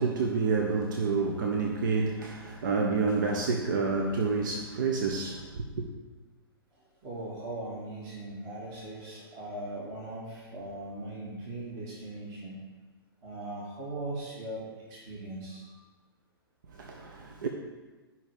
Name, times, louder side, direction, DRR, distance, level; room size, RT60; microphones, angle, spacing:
voice 1, 0.0-5.9 16.8-17.5, right 4 dB, 55° right, 0.9 m, -29 dB
voice 2, 7.0-12.6 13.2-15.7, right 1 dB, 30° right, 2.2 m, -39 dB
11.0 x 5.6 x 5.0 m
figure-of-eight pair, 110°, 13 cm